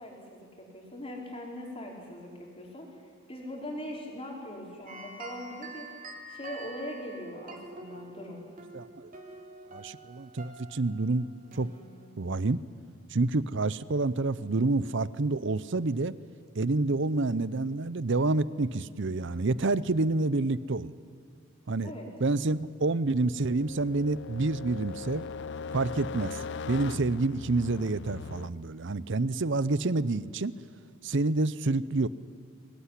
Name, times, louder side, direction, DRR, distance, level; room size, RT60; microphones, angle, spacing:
voice 1, 0.0-3.0 3.3-5.9 6.3-8.4 21.8-22.1, equal, 25° left, 0 dB, 4.8 m, -41 dB
sound 1, 4.9-12.4, right 1 dB, 40° right, 3.6 m, -47 dB
voice 2, 8.7-9.1 9.7-11.3 11.5-11.7 12.2-12.6 13.1-16.1 16.5-20.9 21.7-21.9 22.2-25.2 25.7-30.5 31.0-32.1, right 3 dB, 55° right, 18 dB, 0.7 m, -28 dB
sound 2, 23.4-28.5, left 5 dB, 55° left, 0.5 m, -40 dB
23.5 x 18.5 x 9.9 m, 2.3 s
head